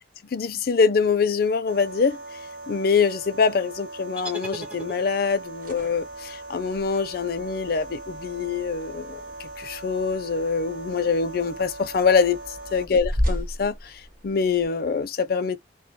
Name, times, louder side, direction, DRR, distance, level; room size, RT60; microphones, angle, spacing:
voice 1, 0.3-2.2 2.7-15.6, left 5 dB, 55° left, 0.4 m, -24 dB
sound 1, 1.7-12.8, right 2 dB, 85° right, 0.9 m, -40 dB
sound 2, 4.2-5.5, right 1 dB, 10° right, 0.5 m, -38 dB
sound 3, 5.5-14.7, equal, 50° right, 1.0 m, -35 dB
2.2 x 2.2 x 2.8 m
head